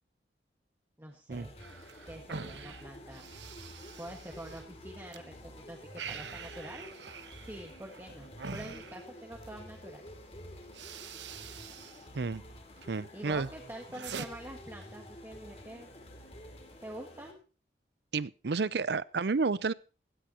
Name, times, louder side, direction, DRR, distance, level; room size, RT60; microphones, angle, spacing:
voice 1, 1.0-1.5 2.1-3.3 4.0-6.9 7.4-10.0 13.1-15.9 16.8-17.4, right 1 dB, 15° right, 1.7 m, -46 dB
sound 1, 1.3-17.3, left 1 dB, 35° left, 2.6 m, -50 dB
sound 2, 1.6-5.2 5.5-9.6 10.2-10.4 10.6-12.1 12.4-12.9 13.3-14.3, right 5 dB, 90° right, 1.0 m, -45 dB
voice 2, 12.9-13.5 18.1-19.7, right 4 dB, 70° right, 0.6 m, -31 dB
16.5 x 14.0 x 2.9 m
head